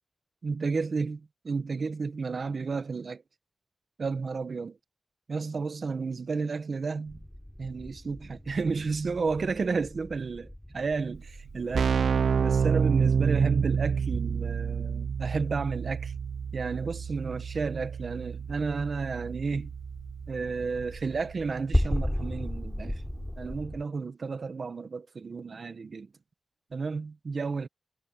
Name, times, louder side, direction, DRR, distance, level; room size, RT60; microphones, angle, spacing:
voice 1, 0.4-3.2 4.0-4.8 5.3-7.2 7.6-11.9 12.4-16.1 16.5-19.7 20.3-23.0 23.4-26.1 26.7-27.7, right 4 dB, 60° right, 1.2 m, -32 dB
Distant Warfare, 7.1-23.8, left 1 dB, 5° left, 3.9 m, -37 dB
Keyboard (musical), 11.2-11.3 11.4-22.1, right 6 dB, 90° right, 0.3 m, -29 dB
wide cardioid pair, 75°, 0 cm